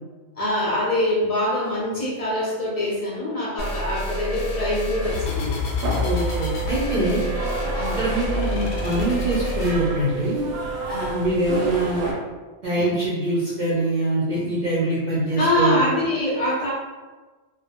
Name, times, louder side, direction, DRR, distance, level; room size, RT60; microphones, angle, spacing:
voice 1, 0.4-5.6 7.8-8.0 10.9-11.2 12.8-12.9 15.3-16.7, left 1 dB, 45° left, -6 dB, 0.5 m, -24 dB
sound 1, 3.6-9.8, left 2 dB, 90° left, 0.9 m, -28 dB
sound 2, 5.0-12.1, right 1 dB, 80° right, 0.9 m, -32 dB
sound 3, 6.0-12.0, right 7 dB, 5° left, 0.7 m, -33 dB
voice 2, 6.0-7.2 8.0-10.5 11.1-12.0 12.6-15.8, right 1 dB, 55° right, -7 dB, 0.5 m, -24 dB
2.2 x 2.0 x 2.7 m, 1.3 s
omnidirectional pair, 1.2 m